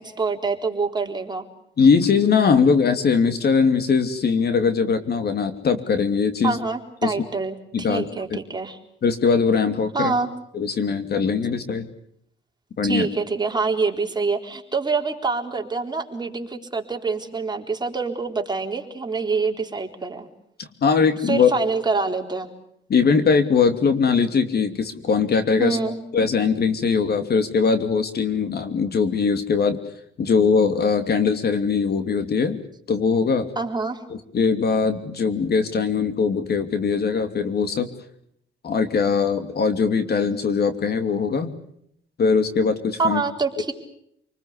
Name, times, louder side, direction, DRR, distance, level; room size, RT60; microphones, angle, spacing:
voice 1, 0.0-1.4 6.4-8.8 9.9-10.3 12.8-20.3 21.3-22.5 25.6-26.0 33.6-34.0 43.0-43.7, right 4 dB, 20° right, 2 dB, 4.0 m, -26 dB
voice 2, 1.8-6.6 7.0-7.1 7.7-8.0 9.0-10.1 10.5-11.9 12.8-13.1 20.6-21.5 22.9-25.8 26.1-29.8 30.2-32.6 32.9-33.5 34.1-37.9 38.6-41.5 42.2-43.2, left 5 dB, 55° left, 8 dB, 2.8 m, -21 dB
28.0 x 20.5 x 8.3 m, 0.73 s
cardioid pair, 90°, 20 cm